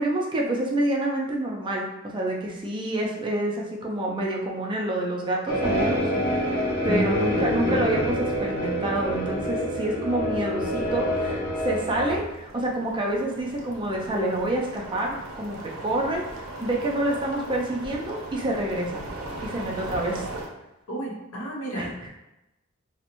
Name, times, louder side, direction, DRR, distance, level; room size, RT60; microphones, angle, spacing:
voice 1, 0.0-6.0 6.4-6.6 6.8-19.0 19.4-20.2 21.7-22.1, right 1 dB, 25° right, -1 dB, 0.4 m, -28 dB
sound 1, 5.5-12.2, equal, 55° left, 0.9 m, -26 dB
voice 2, 6.9-7.8 20.9-21.9, right 1 dB, 80° left, -3 dB, 0.7 m, -31 dB
sound 2, 12.0-20.5, right 2 dB, 85° right, 0.5 m, -38 dB
2.5 x 2.0 x 2.9 m, 0.94 s
head